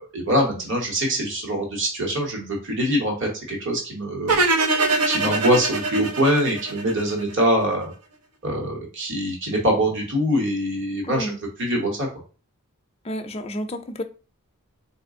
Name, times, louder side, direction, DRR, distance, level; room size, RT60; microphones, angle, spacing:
voice 1, 0.1-4.4 5.0-7.9 8.4-12.1, equal, 55° right, 1.3 m, -23 dB
sound 1, 4.3-7.4, right 3 dB, 75° right, 0.7 m, -23 dB
voice 2, 11.0-11.4 13.0-14.0, equal, 25° left, 0.4 m, -30 dB
4.1 x 2.5 x 3.6 m
head